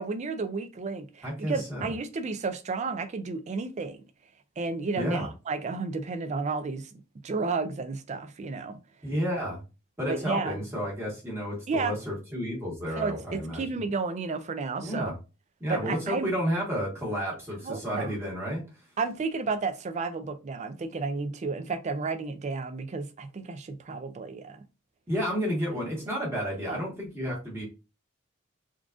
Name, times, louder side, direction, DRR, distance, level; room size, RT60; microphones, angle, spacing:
voice 1, 0.0-4.0 4.6-6.9 7.2-8.8 10.1-10.6 11.7-12.0 13.0-15.1 15.7-16.3 17.6-18.1 19.0-24.6 26.7-26.8, right 4 dB, 35° right, 0.4 m, -32 dB
voice 2, 1.2-1.9 5.0-5.3 9.0-9.6 10.0-13.6 14.8-15.1 15.6-18.6 25.1-27.6, equal, 10° right, 1.2 m, -31 dB
3.7 x 2.4 x 2.4 m
head